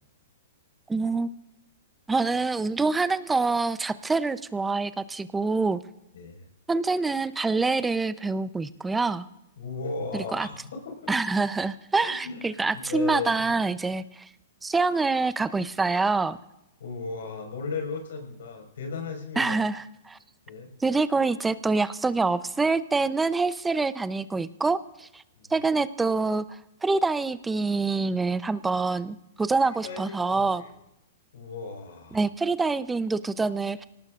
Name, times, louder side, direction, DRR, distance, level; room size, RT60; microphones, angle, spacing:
voice 1, 0.9-1.3 2.1-5.8 6.7-9.3 10.1-10.5 11.1-14.3 14.6-16.4 19.4-20.2 20.8-25.2 25.5-26.4 26.8-30.6 32.1-33.8, right 3 dB, 10° right, 14 dB, 0.6 m, -26 dB
voice 2, 6.1-6.5 9.6-11.1 12.0-12.4 12.7-13.3 16.8-19.7 20.5-20.7 25.4-25.5 29.8-30.7 31.3-32.3, left 4 dB, 80° left, 3 dB, 4.9 m, -36 dB
25.5 x 18.0 x 2.5 m, 0.87 s
hypercardioid pair, 145°, 0 cm